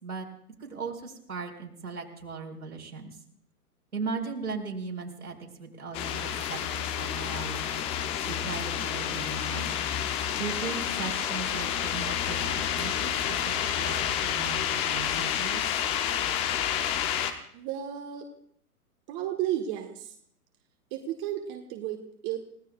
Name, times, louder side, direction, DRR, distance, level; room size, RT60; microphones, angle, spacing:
voice 1, 0.6-3.2 3.9-7.9 8.2-15.6, right 4 dB, 75° right, 1 dB, 4.5 m, -38 dB
sound 1, 5.9-17.3, left 9 dB, 15° left, 0.6 m, -29 dB
voice 2, 17.5-18.3 19.1-20.2 20.9-22.4, right 11 dB, 25° right, 4 dB, 1.4 m, -33 dB
29.5 x 17.0 x 2.4 m, 0.66 s
figure-of-eight pair, 120°, 45 cm